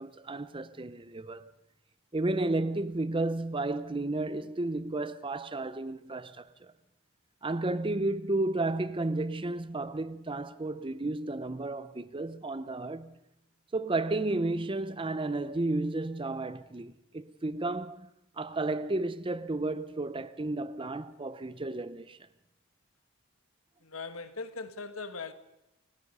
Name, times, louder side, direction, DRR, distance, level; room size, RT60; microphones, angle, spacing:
voice 1, 0.0-1.5 2.1-6.7 7.4-13.2 13.7-18.1 18.4-22.2, right 2 dB, 25° right, 0.6 m, -32 dB
voice 2, 23.8-25.3, left 4 dB, 70° left, 1.6 m, -40 dB
29.5 x 16.5 x 5.5 m
head